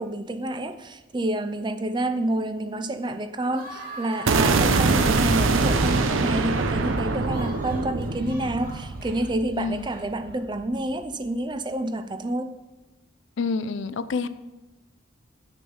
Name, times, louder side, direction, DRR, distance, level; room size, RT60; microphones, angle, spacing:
voice 1, 0.0-12.5 14.2-14.3, right 1 dB, 20° right, 10 dB, 0.4 m, -28 dB
sound 1, 3.5-10.4, right 1 dB, 45° right, 2.0 m, -43 dB
sound 2, 4.3-10.3, right 3 dB, 80° right, 0.7 m, -23 dB
voice 2, 9.6-9.9 13.4-14.3, left 4 dB, 70° left, 14 dB, 0.4 m, -29 dB
8.7 x 6.2 x 5.5 m, 1.0 s
head